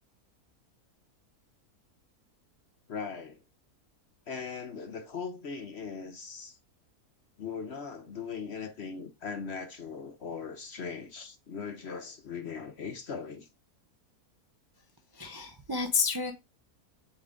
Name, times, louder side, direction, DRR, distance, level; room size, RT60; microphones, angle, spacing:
voice 1, 2.9-3.4 4.3-6.6 7.4-13.5, left 5 dB, 50° left, 0.9 m, -39 dB
voice 2, 15.2-16.3, left 5 dB, 25° right, 0.5 m, -30 dB
7.7 x 3.8 x 3.6 m
omnidirectional pair, 1.6 m